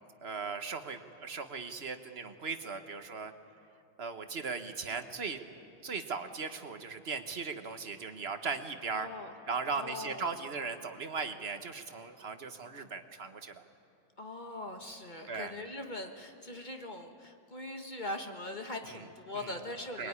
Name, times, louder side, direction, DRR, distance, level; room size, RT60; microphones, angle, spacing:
voice 1, 0.2-3.3 4.0-5.4 5.8-9.1 9.5-13.6 15.3-15.5 18.8-19.1 19.3-19.6 20.0-20.1, right 5 dB, 40° right, 8 dB, 1.1 m, -38 dB
voice 2, 8.9-9.3 9.7-10.3 14.2-20.1, left 2 dB, 25° left, 4 dB, 1.3 m, -41 dB
23.5 x 21.5 x 9.8 m, 2.5 s
omnidirectional pair, 2.2 m